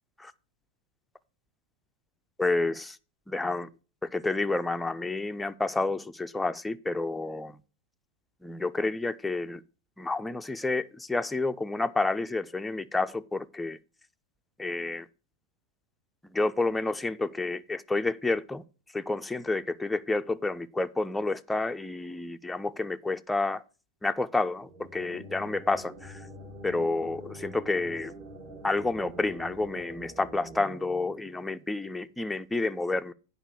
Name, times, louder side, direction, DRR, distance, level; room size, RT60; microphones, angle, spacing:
voice 1, 2.4-3.0 3.3-3.7 4.0-7.5 8.4-9.6 10.0-13.8 14.6-15.1 16.3-18.6 18.9-23.6 24.0-26.2 26.6-28.1 28.6-33.1, left 3 dB, 5° left, 0.5 m, -29 dB
sound 1, 24.5-32.1, right 1 dB, 45° right, 5.1 m, -46 dB
8.8 x 5.3 x 6.3 m
figure-of-eight pair, 90°, 0 cm